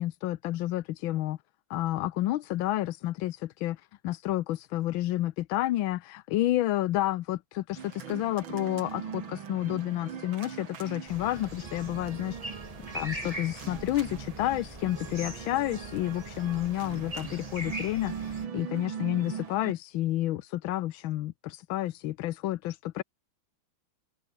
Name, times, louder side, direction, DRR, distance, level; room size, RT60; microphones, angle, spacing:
voice 1, 0.0-1.4 1.7-12.4 12.9-23.0, left 15 dB, 85° left, 1.5 m, -30 dB
sound 1, 7.8-19.7, right 8 dB, 85° right, 2.6 m, -41 dB
sound 2, 11.1-18.5, right 1 dB, 15° right, 5.7 m, -42 dB
omnidirectional pair, 2.1 m